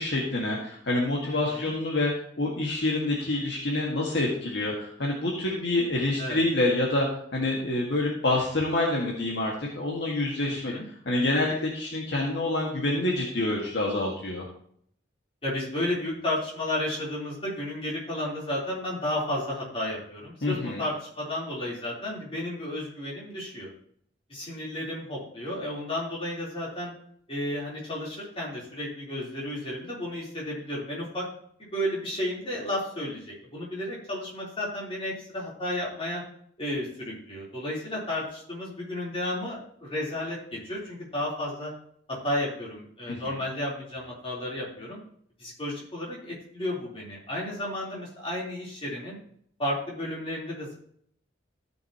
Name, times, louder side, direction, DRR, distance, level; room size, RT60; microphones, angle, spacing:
voice 1, 0.0-2.1 2.4-7.1 7.3-10.7 11.1-14.4 20.4-20.8 43.1-43.4, left 2 dB, 65° left, -2 dB, 1.9 m, -27 dB
voice 2, 1.3-1.7 6.2-6.4 10.4-10.8 15.4-23.7 24.3-26.9 27.3-31.3 31.6-36.2 36.6-40.4 40.7-41.7 42.1-45.0 45.4-49.2 49.6-50.7, left 1 dB, 30° left, -5 dB, 3.8 m, -32 dB
15.0 x 6.5 x 3.0 m, 0.64 s
head